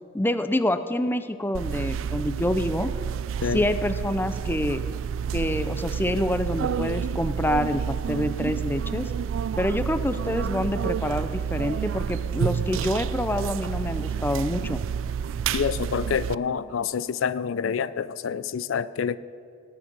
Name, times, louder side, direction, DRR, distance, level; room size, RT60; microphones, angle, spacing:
voice 1, 0.1-2.9 3.5-4.8 5.3-9.1 9.6-14.8, left 1 dB, 10° left, 11 dB, 0.5 m, -27 dB
sound 1, 1.5-16.3, right 7 dB, 80° right, 0.3 m, -29 dB
voice 2, 15.5-19.2, left 7 dB, 85° left, 17 dB, 0.4 m, -27 dB
18.0 x 9.6 x 5.4 m, 2.4 s
head